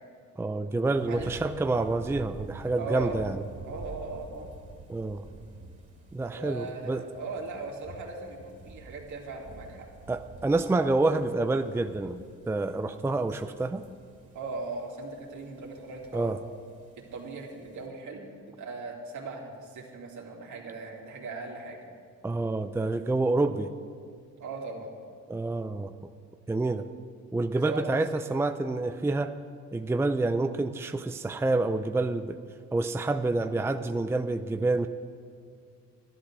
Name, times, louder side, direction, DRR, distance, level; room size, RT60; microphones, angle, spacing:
voice 1, 0.4-3.4 4.9-5.2 6.1-7.0 10.1-12.2 12.5-13.8 16.1-16.4 22.2-23.7 25.3-25.9 26.5-26.9 27.3-29.4 29.7-32.4 32.7-34.9, right 2 dB, 10° right, 8 dB, 0.5 m, -28 dB
sound 1, 0.9-17.8, right 2 dB, 25° right, 2.4 m, -48 dB
voice 2, 2.8-3.2 3.6-4.5 6.4-9.9 14.3-16.3 17.1-21.8 24.4-24.9 27.7-27.9 28.1-28.2, right 3 dB, 70° right, -1 dB, 2.7 m, -38 dB
12.0 x 12.0 x 6.2 m, 2.3 s
cardioid pair, 90°, 30 cm